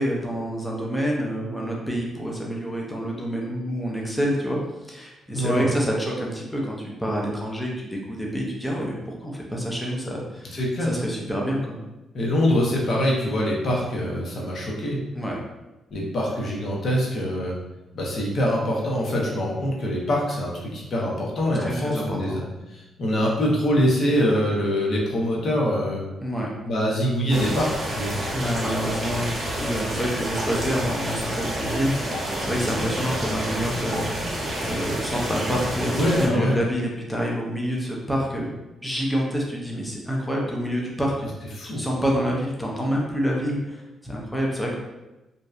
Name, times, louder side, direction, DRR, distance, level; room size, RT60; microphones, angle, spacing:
voice 1, 0.0-10.6 10.8-11.8 15.1-15.4 21.6-22.4 26.2-26.5 28.3-34.3 34.6-38.5 38.8-41.3 41.6-44.8, equal, 5° left, -3 dB, 0.4 m, -27 dB
voice 2, 5.3-5.7 10.5-10.9 12.1-15.0 15.9-17.6 17.9-22.4 22.7-26.1 26.6-28.2 35.9-36.6 41.6-41.8, equal, 45° left, -3 dB, 0.6 m, -24 dB
sound 1, 27.3-36.3, equal, 45° right, 0.8 m, -29 dB
2.6 x 2.0 x 2.3 m, 1.0 s
cardioid pair, 140°, 0 cm